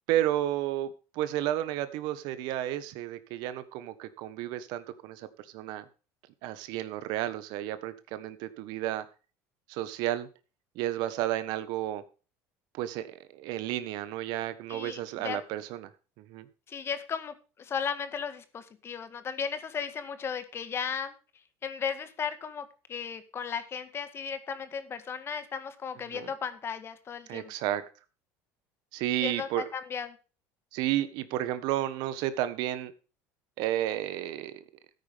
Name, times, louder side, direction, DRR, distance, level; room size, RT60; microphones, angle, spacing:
voice 1, 0.1-5.3 5.5-5.8 6.4-9.0 9.7-10.3 10.7-12.0 12.7-13.1 13.3-15.9 16.2-16.4 26.1-26.3 27.3-27.8 28.9-29.6 30.7-32.9 33.6-34.6, right 13 dB, 70° right, 13 dB, 1.4 m, -32 dB
voice 2, 14.7-15.4 16.7-21.1 21.6-27.5 29.2-30.2, left 6 dB, 35° left, 10 dB, 1.8 m, -35 dB
13.5 x 9.6 x 3.6 m, 0.35 s
supercardioid pair, 120°, 7 cm